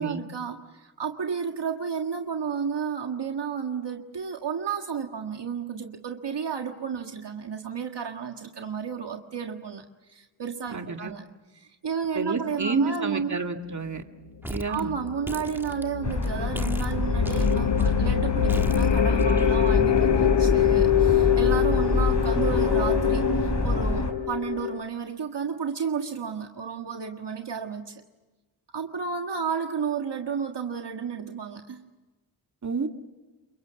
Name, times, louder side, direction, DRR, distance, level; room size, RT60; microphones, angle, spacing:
voice 1, 0.0-11.2 11.5-13.4 14.7-28.0 28.7-31.8, right 6 dB, 60° right, 4 dB, 1.8 m, -32 dB
voice 2, 10.7-11.1 12.2-14.0 14.5-14.9 32.6-32.9, right 4 dB, 35° right, 5 dB, 2.1 m, -29 dB
sound 1, 14.4-14.8 15.1-16.3 16.5-17.9 18.5-19.8, right 1 dB, 5° right, 1.5 m, -38 dB
sound 2, 14.5-24.8, left 10 dB, 60° left, 1.0 m, -25 dB
sound 3, 16.0-24.1, left 2 dB, 40° left, 3.9 m, -26 dB
29.0 x 23.0 x 7.1 m, 1.2 s
cardioid pair, 70°, 48 cm